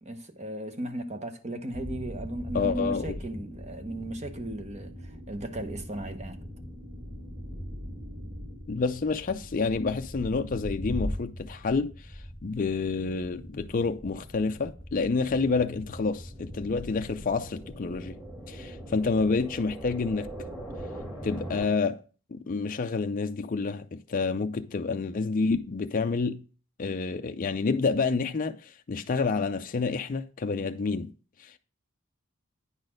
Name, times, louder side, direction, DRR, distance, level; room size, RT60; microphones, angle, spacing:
voice 1, 0.0-6.4, right 1 dB, 30° right, 0.9 m, -36 dB
sound 1, 1.7-21.7, equal, 10° right, 2.0 m, -40 dB
voice 2, 2.5-3.2 8.7-18.2 18.5-20.3 21.2-22.0 22.3-26.4 26.8-31.1 31.4-31.6, left 4 dB, 40° left, 0.5 m, -28 dB
9.6 x 4.1 x 6.4 m
head